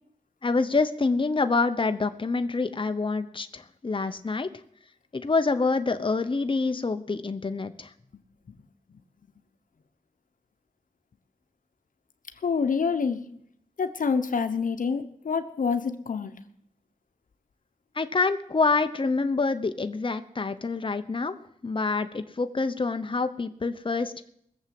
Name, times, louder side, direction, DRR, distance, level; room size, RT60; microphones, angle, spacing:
voice 1, 0.4-4.5 5.1-7.9 18.0-21.4 21.6-24.1, left 3 dB, 40° left, 9 dB, 1.0 m, -26 dB
voice 2, 12.4-13.2 13.8-16.3, left 5 dB, 80° left, 9 dB, 1.1 m, -27 dB
20.0 x 7.4 x 7.8 m, 0.72 s
cardioid pair, 60°, 14 cm